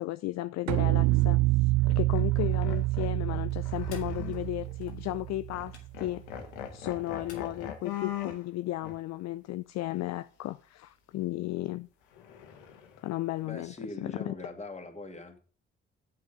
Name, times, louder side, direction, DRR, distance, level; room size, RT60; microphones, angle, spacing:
voice 1, 0.0-6.4 6.7-11.9 13.0-14.3, left 16 dB, 55° left, 0.5 m, -35 dB
sound 1, 0.7-5.9, right 19 dB, 55° right, 0.5 m, -27 dB
sound 2, 1.0-1.3 1.8-4.7 5.1-5.2 5.5-5.7 5.9-8.4 8.8-9.0 12.1-13.1, left 9 dB, 75° left, 1.5 m, -41 dB
sound 3, 3.5-8.3, left 5 dB, 90° left, 1.2 m, -55 dB
voice 2, 13.4-15.4, left 2 dB, 20° left, 2.5 m, -42 dB
8.6 x 7.7 x 5.7 m
figure-of-eight pair, 40°, 33 cm